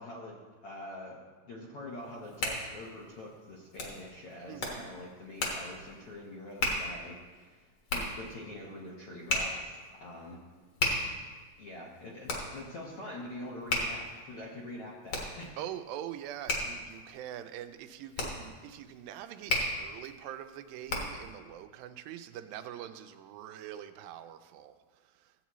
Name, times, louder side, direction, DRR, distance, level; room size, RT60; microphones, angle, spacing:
voice 1, 0.0-7.7 7.9-10.4 11.6-15.5, left 1 dB, 70° left, -4 dB, 1.4 m, -45 dB
Hands, 2.0-21.3, left 2 dB, 50° left, 1.8 m, -36 dB
voice 2, 4.5-4.9 15.6-25.3, right 11 dB, 90° right, 9 dB, 2.4 m, -44 dB
15.5 x 8.3 x 3.1 m, 1.4 s
omnidirectional pair, 4.0 m